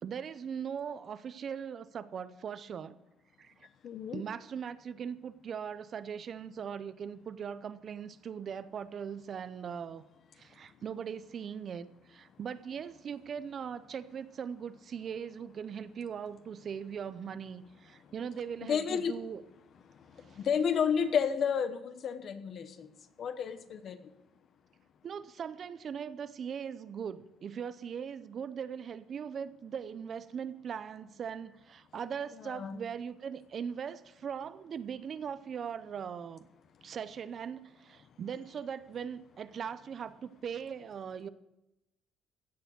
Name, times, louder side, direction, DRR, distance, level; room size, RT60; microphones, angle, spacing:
voice 1, 0.0-3.0 3.4-3.7 4.1-10.0 10.3-19.4 20.2-20.4 25.0-36.5 36.8-41.3, right 7 dB, 40° right, 14 dB, 0.6 m, -40 dB
voice 2, 3.8-4.2 18.6-19.1 20.4-22.9 23.2-24.0 32.4-32.8, left 7 dB, 45° left, 11 dB, 1.0 m, -31 dB
16.0 x 6.8 x 8.2 m, 0.91 s
cardioid pair, 140°, 0 cm